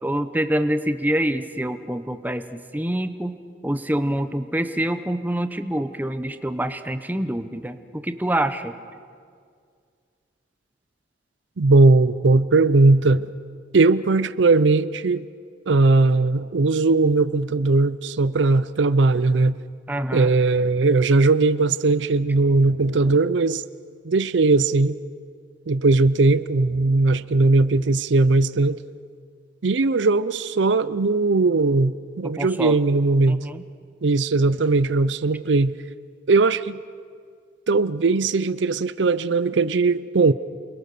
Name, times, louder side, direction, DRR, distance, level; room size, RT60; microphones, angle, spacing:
voice 1, 0.0-3.3 3.6-8.7 19.9-20.3 32.2-32.8 33.3-33.6, right 1 dB, 10° right, 0.9 m, -26 dB
voice 2, 11.6-13.3 13.7-15.2 15.7-19.6 20.1-23.6 24.0-25.0 25.7-28.8 29.6-33.4 34.0-35.7 36.3-36.8 37.7-40.3, right 3 dB, 75° right, 0.6 m, -19 dB
29.0 x 21.5 x 6.8 m
head